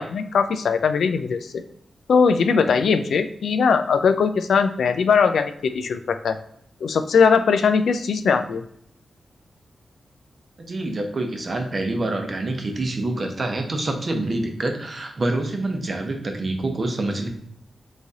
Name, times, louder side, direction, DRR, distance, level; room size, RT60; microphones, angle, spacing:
voice 1, 0.0-1.6 2.1-6.4 6.8-8.6, left 5 dB, 85° left, 9 dB, 0.3 m, -20 dB
voice 2, 10.6-17.3, right 2 dB, 40° right, 3 dB, 0.7 m, -26 dB
4.0 x 3.2 x 3.5 m, 0.68 s
wide cardioid pair, 140°, 0 cm